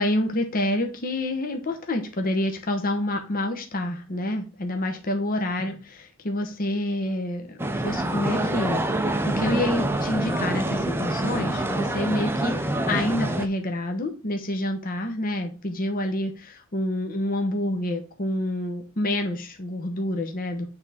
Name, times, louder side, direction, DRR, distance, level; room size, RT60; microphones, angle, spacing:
voice 1, 0.0-20.7, left 1 dB, 40° left, 4 dB, 0.9 m, -28 dB
sound 1, 7.6-13.5, right 1 dB, 10° right, 0.5 m, -26 dB
8.8 x 3.5 x 4.2 m, 0.34 s
head